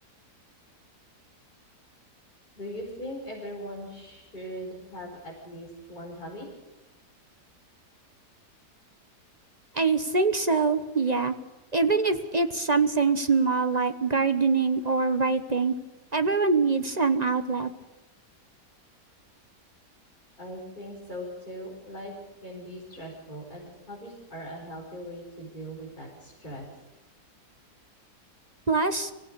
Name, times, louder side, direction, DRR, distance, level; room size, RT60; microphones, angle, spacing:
voice 1, 2.6-6.5 20.4-22.1 22.4-26.6, equal, 30° left, -4 dB, 5.6 m, -40 dB
voice 2, 9.7-11.3 11.7-15.7 16.1-17.7 28.7-29.1, right 4 dB, 30° right, 10 dB, 0.9 m, -24 dB
25.0 x 17.0 x 6.9 m, 1.1 s
omnidirectional pair, 1.8 m